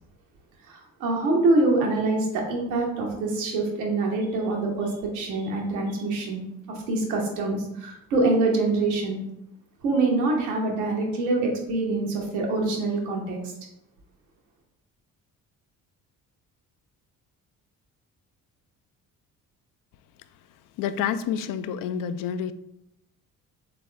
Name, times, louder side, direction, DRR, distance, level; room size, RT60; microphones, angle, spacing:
voice 1, 0.6-9.2 9.8-13.5, right 2 dB, 85° right, 0 dB, 1.1 m, -25 dB
voice 2, 20.8-22.5, left 8 dB, 55° left, 13 dB, 0.4 m, -28 dB
4.0 x 3.8 x 3.2 m, 0.80 s
hypercardioid pair, 50°, 42 cm